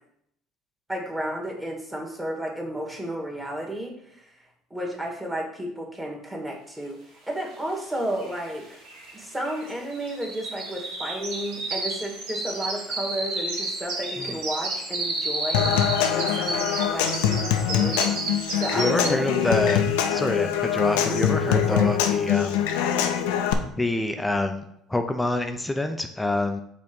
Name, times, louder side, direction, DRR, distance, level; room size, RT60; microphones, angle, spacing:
voice 1, 0.9-4.4 4.7-8.8 9.1-15.7 16.1-18.1 18.6-19.6 21.1-21.9, right 1 dB, 15° right, -1 dB, 1.9 m, -32 dB
sound 1, 7.7-7.8 8.0-19.4 19.8-20.1 20.6-20.7, right 2 dB, 85° right, 2.1 m, -32 dB
Human voice / Acoustic guitar / Percussion, 15.5-23.5, left 9 dB, 85° left, 0.6 m, -23 dB
voice 2, 18.8-19.8 20.1-22.6 23.7-26.6, left 1 dB, 10° left, 6 dB, 0.6 m, -26 dB
5.2 x 3.5 x 5.3 m, 0.73 s
supercardioid pair, 90°, 0 cm